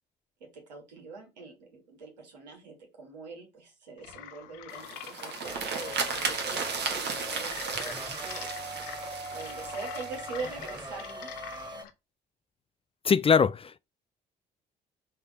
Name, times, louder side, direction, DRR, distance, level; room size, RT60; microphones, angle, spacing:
voice 1, 0.4-8.5 9.3-11.3, right 4 dB, 85° right, 2.2 m, -43 dB
sound 1, 4.0-11.9, left 10 dB, 70° left, 0.8 m, -44 dB
sound 2, 4.7-10.8, right 5 dB, 50° right, 1.6 m, -35 dB
sound 3, 5.4-11.8, right 2 dB, 20° right, 2.2 m, -42 dB
voice 2, 13.1-13.8, left 6 dB, 25° left, 0.4 m, -22 dB
5.5 x 3.4 x 5.0 m
hypercardioid pair, 50°, 21 cm